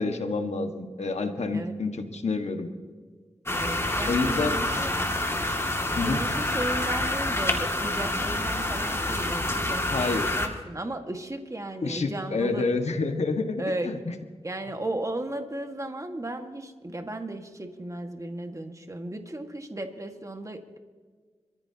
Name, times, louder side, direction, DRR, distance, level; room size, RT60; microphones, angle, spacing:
voice 1, 0.0-2.7 4.1-4.6 5.9-6.2 9.9-10.3 11.8-13.5 13.8-14.0, left 3 dB, 75° left, 5 dB, 1.7 m, -28 dB
sound 1, 3.5-10.5, left 1 dB, 25° left, 2.3 m, -27 dB
voice 2, 3.6-4.9 5.9-12.7 13.6-14.0 14.4-20.8, right 1 dB, 30° right, 5 dB, 1.8 m, -35 dB
26.5 x 14.5 x 2.9 m, 1.6 s
cardioid pair, 45°, 11 cm